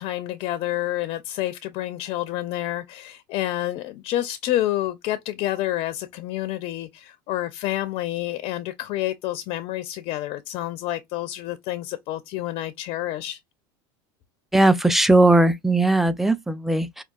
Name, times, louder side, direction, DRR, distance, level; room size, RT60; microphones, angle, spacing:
voice 1, 0.0-13.4, left 14 dB, 55° left, 0.4 m, -28 dB
voice 2, 14.5-17.0, right 2 dB, ahead, 0.4 m, -18 dB
4.5 x 2.3 x 2.3 m
hypercardioid pair, 90°, 11 cm